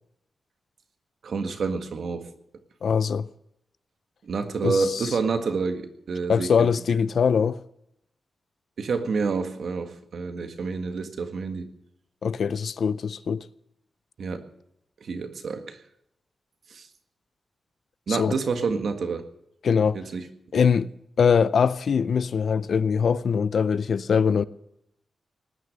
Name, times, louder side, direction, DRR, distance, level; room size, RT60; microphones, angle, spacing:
voice 1, 1.2-2.3 4.2-7.0 8.8-11.7 14.2-14.5 15.0-15.8 16.7-16.9 18.1-19.2 19.9-20.2, right 4 dB, 65° right, 1.8 m, -28 dB
voice 2, 2.8-3.3 4.6-5.1 6.3-7.6 12.2-13.5 18.1-18.3 19.6-20.0 20.5-20.9 21.2-24.4, left 6 dB, 65° left, 0.5 m, -22 dB
19.0 x 9.7 x 6.7 m
wide cardioid pair, 135°, 0 cm